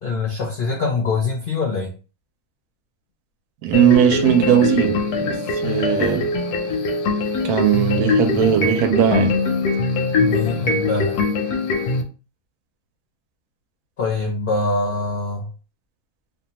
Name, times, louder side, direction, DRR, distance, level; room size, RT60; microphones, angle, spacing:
voice 1, 0.0-1.9 10.1-11.2 14.0-15.5, left 3 dB, 55° left, 0.6 m, -24 dB
voice 2, 3.6-5.4 5.6-6.3 7.4-9.4, right 9 dB, 75° right, 1.0 m, -18 dB
sound 1, 3.7-12.0, left 3 dB, 85° left, 1.1 m, -22 dB
2.8 x 2.3 x 2.8 m
omnidirectional pair, 1.6 m